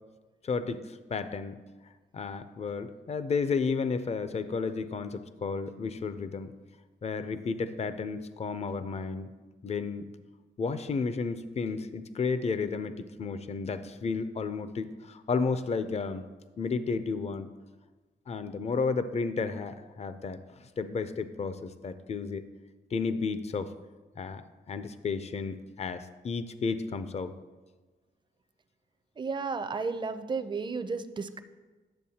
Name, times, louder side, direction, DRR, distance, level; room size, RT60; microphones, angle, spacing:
voice 1, 0.4-1.6 2.1-6.5 7.0-9.3 9.6-10.0 10.6-16.3 16.6-17.5 18.3-22.4 22.9-23.7 24.2-24.4 24.7-27.3, left 4 dB, 35° left, 11 dB, 0.5 m, -32 dB
voice 2, 29.2-31.4, right 4 dB, 25° right, 10 dB, 0.4 m, -33 dB
10.0 x 6.9 x 2.8 m, 1.3 s
cardioid pair, 90°, 18 cm